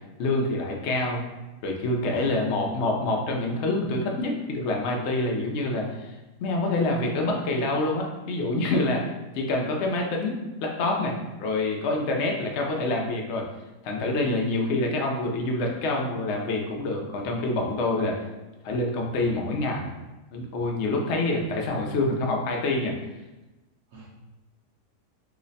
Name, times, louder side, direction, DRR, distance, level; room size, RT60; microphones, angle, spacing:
voice 1, 0.2-1.2 1.6-13.5 13.8-18.2 18.6-19.9 20.3-22.9, left 2 dB, 90° left, 0 dB, 0.6 m, -26 dB
voice 2, 2.1-2.5 23.9-24.1, left 1 dB, 70° right, -7 dB, 1.1 m, -43 dB
3.1 x 2.1 x 3.9 m, 1.1 s
omnidirectional pair, 1.7 m